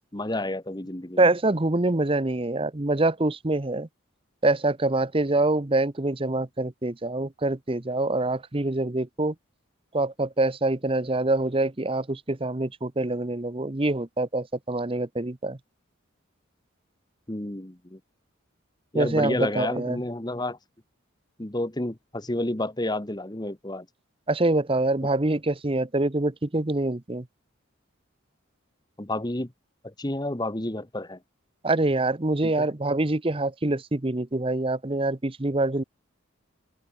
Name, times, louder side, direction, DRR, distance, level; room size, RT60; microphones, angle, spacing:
voice 1, 0.1-1.2 17.3-18.0 18.9-20.6 21.4-23.9 29.0-29.5 29.8-31.2 32.4-32.7, left 1 dB, 20° left, 1.2 m, -30 dB
voice 2, 1.2-3.9 4.4-9.3 9.9-15.6 18.9-20.0 24.3-27.3 31.6-35.8, right 2 dB, 25° right, 0.9 m, -25 dB
head